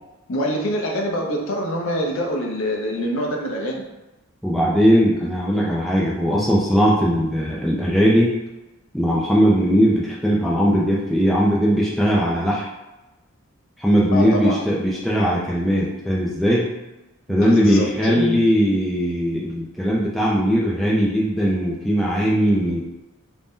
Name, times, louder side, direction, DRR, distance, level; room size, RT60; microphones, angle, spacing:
voice 1, 0.3-3.8 14.1-14.6 17.3-18.4, equal, 60° left, 0 dB, 0.5 m, -25 dB
voice 2, 4.4-8.4 8.9-12.7 13.8-16.7 17.3-22.8, equal, ahead, -6 dB, 0.4 m, -19 dB
2.6 x 2.1 x 3.4 m, 1.0 s
head